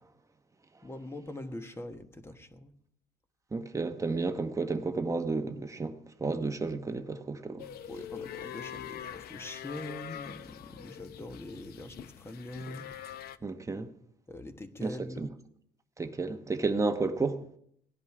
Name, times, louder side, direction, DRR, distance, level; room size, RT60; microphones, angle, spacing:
voice 1, 0.8-2.7 7.9-12.9 14.3-15.3, left 1 dB, 15° left, 1.3 m, -43 dB
voice 2, 3.5-7.7 13.4-13.9 14.8-15.3 16.0-17.4, right 3 dB, 20° right, 1.0 m, -32 dB
sound 1, 7.6-13.4, left 10 dB, 65° left, 0.7 m, -44 dB
17.0 x 10.5 x 4.9 m
cardioid pair, 110°, 17 cm